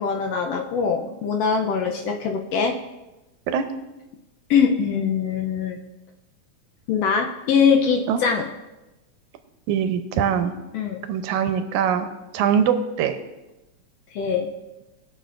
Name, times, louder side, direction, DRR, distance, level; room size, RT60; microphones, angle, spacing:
voice 1, 0.0-2.8 4.5-5.8 6.9-8.4 10.7-11.0 14.1-14.5, left 6 dB, 75° left, 3 dB, 1.6 m, -22 dB
voice 2, 9.7-10.5 11.1-12.1 12.3-13.2, right 8 dB, 80° right, 8 dB, 2.1 m, -22 dB
20.0 x 6.7 x 2.5 m, 1.0 s
omnidirectional pair, 3.4 m